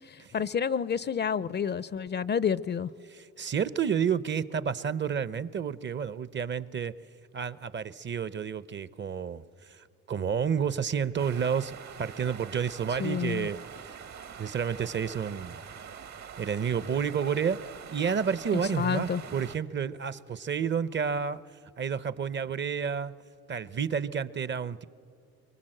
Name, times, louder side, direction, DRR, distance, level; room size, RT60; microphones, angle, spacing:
voice 1, 0.1-2.9 13.0-13.5 18.8-19.2, left 7 dB, 35° left, 19 dB, 0.5 m, -29 dB
voice 2, 3.1-6.9 7.3-14.0 14.4-15.6 16.4-21.4 21.8-23.1 23.5-24.9, right 7 dB, 40° right, 17 dB, 0.6 m, -30 dB
sound 1, 11.2-19.6, right 7 dB, 65° right, 1.4 m, -45 dB
24.5 x 23.5 x 7.7 m, 2.6 s
cardioid pair, 90°, 30 cm